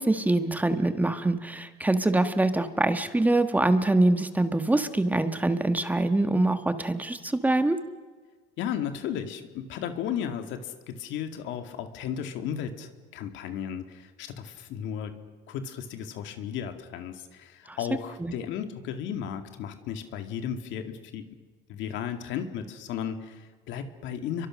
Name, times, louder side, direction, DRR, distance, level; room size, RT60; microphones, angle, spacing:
voice 1, 0.0-7.8 17.7-17.8 18.2-18.3, right 2 dB, 10° right, 9 dB, 1.4 m, -24 dB
voice 2, 8.6-15.2 15.5-21.3 21.7-24.5, left 8 dB, 65° left, 7 dB, 2.2 m, -34 dB
30.0 x 23.5 x 6.4 m, 1.5 s
cardioid pair, 125°, 21 cm